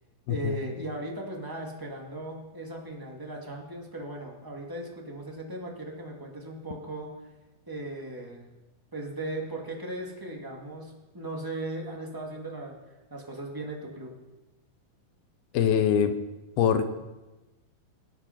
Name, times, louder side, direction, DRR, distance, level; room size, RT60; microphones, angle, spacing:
voice 1, 0.3-7.1 7.7-8.5 8.9-12.7 13.1-14.1, right 1 dB, 15° right, -1 dB, 0.8 m, -37 dB
voice 2, 15.5-16.1 16.6-16.9, left 8 dB, 80° left, 9 dB, 2.7 m, -23 dB
20.5 x 8.4 x 5.9 m, 1.1 s
omnidirectional pair, 4.5 m